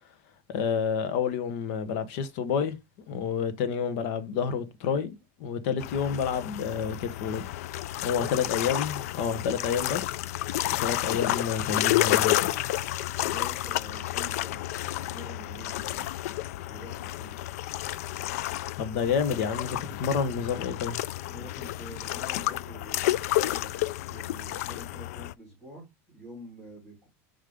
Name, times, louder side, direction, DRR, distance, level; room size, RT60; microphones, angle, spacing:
voice 1, 0.5-2.8 3.1-7.5 8.0-10.1 10.8-12.5 18.8-21.0, left 6 dB, 60° left, 1.1 m, -29 dB
sound 1, 5.8-25.3, left 15 dB, 85° left, 0.3 m, -30 dB
voice 2, 8.1-8.5 13.2-16.1 16.6-17.3 21.2-27.1, right 1 dB, 10° left, 3.6 m, -47 dB
5.4 x 5.1 x 3.6 m
supercardioid pair, 160°, 8 cm